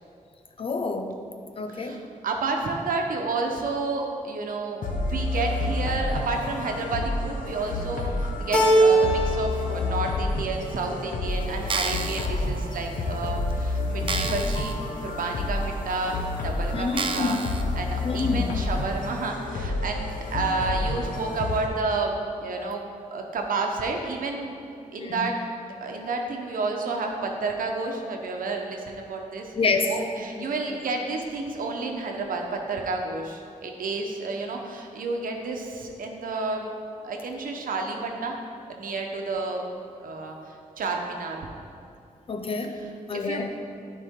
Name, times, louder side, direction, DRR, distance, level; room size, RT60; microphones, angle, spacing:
voice 1, 0.6-1.2 1.6-2.0 14.9-15.0 16.7-17.5 18.0-18.5 22.6-22.7 25.0-25.3 29.5-29.9 42.3-43.5, left 4 dB, 40° left, 5 dB, 0.6 m, -28 dB
voice 2, 1.7-17.4 17.8-22.8 23.1-24.6 24.9-25.4 25.8-29.5 29.9-36.7 37.0-38.4 38.7-39.6 40.0-41.4 43.1-43.5, right 3 dB, 85° right, 2 dB, 1.0 m, -30 dB
sound 1, 4.8-21.7, left 2 dB, 75° left, 1.1 m, -29 dB
Keyboard (musical), 8.5-9.6 9.9-10.7, right 2 dB, 5° left, 1.2 m, -21 dB
sound 2, 11.6-12.3 13.0-13.1 13.5-13.6 14.1-14.7 15.2-15.3 16.0-16.1 16.9-17.6 18.2-18.3, right 4 dB, 40° right, 0.5 m, -30 dB
13.0 x 5.1 x 3.7 m, 2.5 s
wide cardioid pair, 150°, 14 cm